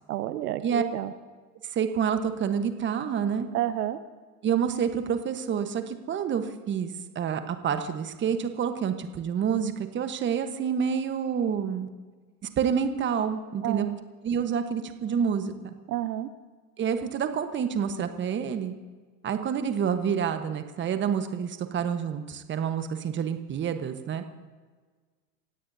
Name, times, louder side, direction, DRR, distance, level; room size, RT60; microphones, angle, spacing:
voice 1, 0.1-1.1 3.5-4.0 13.6-14.0 15.9-16.3, right 12 dB, 65° right, 12 dB, 1.0 m, -30 dB
voice 2, 1.7-3.5 4.4-11.9 12.6-13.9 14.2-15.7 16.8-18.7 19.2-24.2, right 7 dB, 20° right, 8 dB, 1.3 m, -28 dB
30.0 x 16.5 x 2.8 m, 1.5 s
hypercardioid pair, 100°, 50 cm